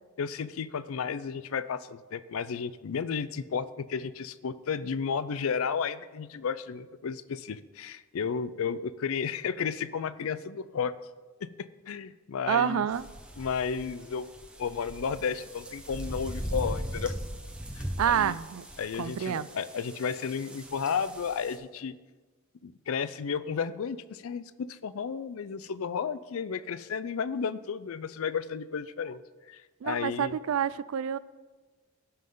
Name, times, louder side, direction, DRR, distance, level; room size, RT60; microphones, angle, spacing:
voice 1, 0.2-10.9 11.4-11.5 11.9-12.9 13.4-14.3 14.6-17.2 17.8-18.4 18.8-22.0 22.6-29.2 29.5-30.3, left 6 dB, 70° left, 0.4 m, -33 dB
voice 2, 12.5-13.1 18.0-18.7 19.0-19.5 29.8-31.2, right 8 dB, 70° right, 0.3 m, -28 dB
sound 1, 12.9-21.6, equal, 5° right, 0.8 m, -39 dB
16.5 x 5.6 x 3.8 m
head